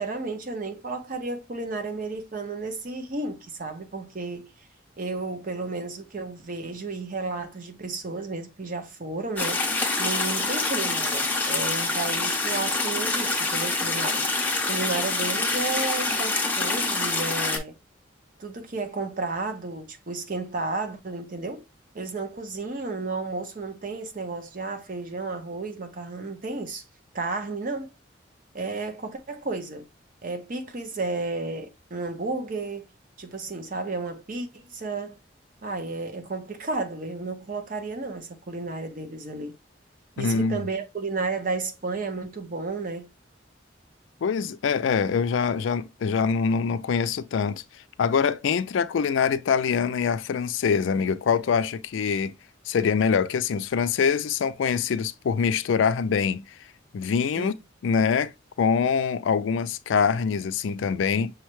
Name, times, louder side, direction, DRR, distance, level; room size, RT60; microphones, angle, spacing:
voice 1, 0.0-4.5 5.0-9.7 10.0-14.2 14.7-17.8 18.4-21.7 21.9-26.8 27.1-27.9 28.5-29.9 30.2-32.9 33.2-35.2 35.6-39.5 40.2-43.1 57.3-57.5, right 3 dB, 45° right, 0.7 m, -32 dB
sound 1, 9.4-17.6, left 3 dB, 10° left, 0.6 m, -26 dB
voice 2, 40.2-40.6 44.2-47.6 48.0-52.3 52.7-56.4 56.9-57.5 57.8-58.3 58.6-61.3, left 6 dB, 80° left, 0.4 m, -24 dB
6.2 x 2.2 x 3.0 m
head